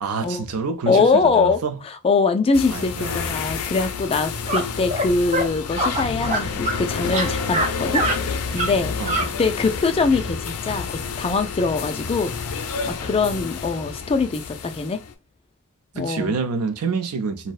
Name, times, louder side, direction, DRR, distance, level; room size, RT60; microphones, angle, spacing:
voice 1, 0.0-1.8 2.7-3.4 9.0-9.4 16.0-17.5, right 4 dB, 75° right, 0.5 m, -27 dB
voice 2, 0.9-8.0 8.5-8.9 9.4-10.9 11.2-12.3 12.9-15.0 15.9-16.4, left 4 dB, 25° left, 0.3 m, -22 dB
sound 1, 2.5-15.1, left 5 dB, 85° left, 0.4 m, -29 dB
sound 2, 4.5-4.6 4.9-5.1 5.3-5.5 5.8-6.8 7.1-7.7 7.9-8.2 8.6-8.7 9.1-9.3, right 1 dB, 35° right, 0.7 m, -23 dB
2.6 x 2.1 x 2.3 m
head